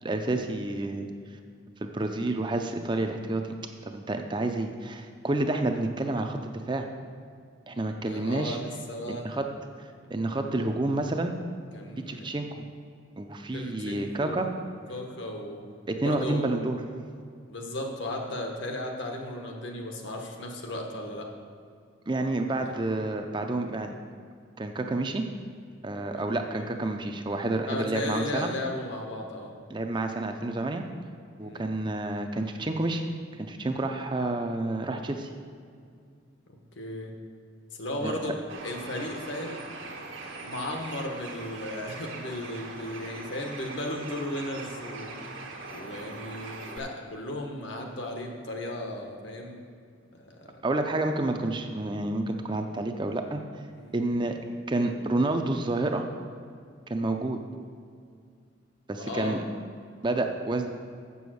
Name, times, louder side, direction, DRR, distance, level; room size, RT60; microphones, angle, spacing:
voice 1, 0.0-1.1 1.8-3.4 3.8-6.9 7.7-8.6 9.1-9.5 9.8-11.3 12.1-12.5 13.2-14.5 15.9-16.8 22.1-24.0 24.6-25.3 25.8-28.5 29.7-30.8 31.4-33.0 33.4-35.3 38.0-38.3 50.6-53.4 53.9-54.4 54.7-56.0 56.9-57.4 58.9-59.4 60.0-60.7, right 2 dB, 25° right, 5 dB, 0.5 m, -29 dB
voice 2, 8.0-9.2 11.7-12.3 13.5-14.5 14.9-15.6 16.0-16.6 17.5-21.3 22.6-22.7 26.2-26.3 26.5-26.7 27.7-29.5 31.4-31.7 36.8-37.1 37.8-39.7 40.4-45.1 45.7-49.6 50.2-50.6 53.7-53.9 58.9-59.4, left 1 dB, 70° left, 2 dB, 1.2 m, -35 dB
Bird, 38.5-46.8, right 3 dB, 85° right, 1.4 m, -41 dB
7.5 x 7.0 x 6.3 m, 2.2 s
head